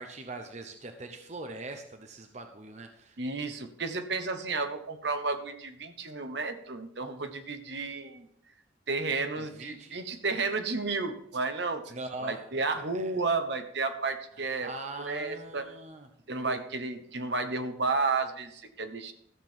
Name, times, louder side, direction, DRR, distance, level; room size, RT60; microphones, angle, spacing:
voice 1, 0.0-3.2 9.4-10.0 11.9-12.4 12.8-13.1 14.6-16.1 16.4-16.6, right 2 dB, 35° right, 6 dB, 0.7 m, -42 dB
voice 2, 3.2-8.3 8.9-11.9 12.2-14.7 15.0-15.7 16.3-19.1, right 3 dB, 60° right, 8 dB, 1.1 m, -32 dB
13.5 x 7.7 x 4.5 m, 0.71 s
head